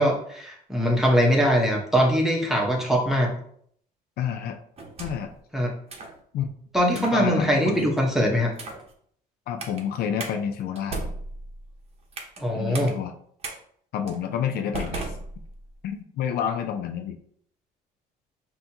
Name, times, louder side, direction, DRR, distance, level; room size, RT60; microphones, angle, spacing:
voice 1, 0.0-3.3 5.5-5.7 6.7-8.5 12.4-12.9, equal, ahead, -1 dB, 1.1 m, -22 dB
voice 2, 4.2-4.6 5.0-5.3 6.3-6.5 6.9-7.9 9.5-11.1 12.5-13.1 13.9-15.1 15.8-17.2, left 8 dB, 65° left, 6 dB, 0.5 m, -29 dB
sound 1, 4.8-5.4 5.9-6.2 6.9-7.2 7.7-8.0 8.5-8.9 9.6-9.8 10.2-10.3 10.8-12.4 12.7-12.9 13.4-13.6 14.1-14.2 14.7-15.8, right 2 dB, 35° right, 0.9 m, -36 dB
5.4 x 2.8 x 2.9 m, 0.64 s
cardioid pair, 110°, 17 cm